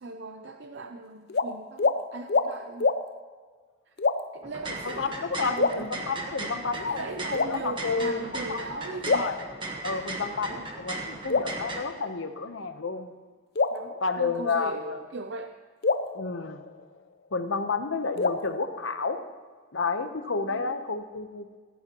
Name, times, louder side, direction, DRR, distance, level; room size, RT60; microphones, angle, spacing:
voice 1, 0.0-3.0 4.3-5.9 6.2-9.3 10.5-10.7 13.7-15.5 20.5-20.7, right 3 dB, 60° right, 6 dB, 0.6 m, -39 dB
sound 1, 1.3-1.5 1.8-2.0 2.3-2.5 2.8-3.0 4.0-4.4 5.6-6.4 7.3-8.1 9.1-10.1 11.3-12.4 13.6-14.8 15.8-17.3 18.2-19.4, left 4 dB, 55° left, 0.6 m, -28 dB
sound 2, 4.4-11.8, right 2 dB, 25° right, 1.3 m, -37 dB
voice 2, 4.8-8.8 9.1-9.4 9.8-13.1 14.0-15.0 16.1-16.6 17.3-19.2 19.7-21.6, left 4 dB, 75° left, 8 dB, 1.0 m, -31 dB
16.5 x 14.0 x 3.0 m, 1.5 s
head